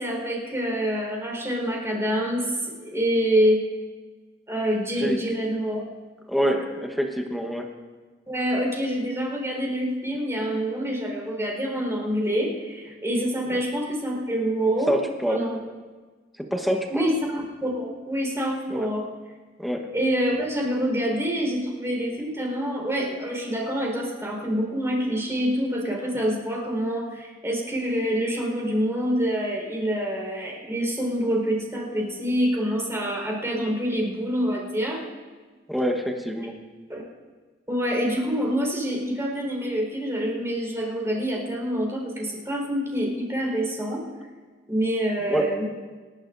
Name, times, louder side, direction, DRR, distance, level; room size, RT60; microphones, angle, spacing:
voice 1, 0.0-2.5 2.8-3.6 4.5-5.8 8.3-15.0 15.2-15.6 16.9-19.1 19.9-35.0 36.9-37.0 37.7-44.0 44.7-45.6, equal, 15° right, -1 dB, 4.5 m, -26 dB
voice 2, 6.3-7.7 13.5-13.6 14.9-15.5 16.5-17.1 18.7-18.9 19.6-19.9 35.7-36.6 45.2-45.5, equal, ahead, 2 dB, 1.2 m, -26 dB
28.5 x 12.0 x 2.7 m, 1.4 s
head